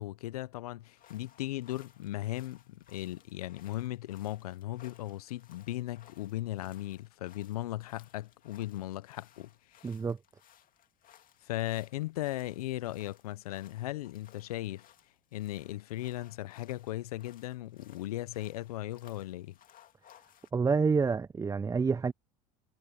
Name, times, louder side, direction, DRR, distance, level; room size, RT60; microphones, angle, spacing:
voice 1, 0.0-10.0 11.4-14.9 15.3-19.6, left 15 dB, 90° left, 0.6 m, -37 dB
sound 1, 0.8-20.5, left 10 dB, 50° left, 2.5 m, -62 dB
voice 2, 9.8-10.2 20.5-22.1, right 5 dB, 15° right, 0.4 m, -28 dB
hypercardioid pair, 80°, 19 cm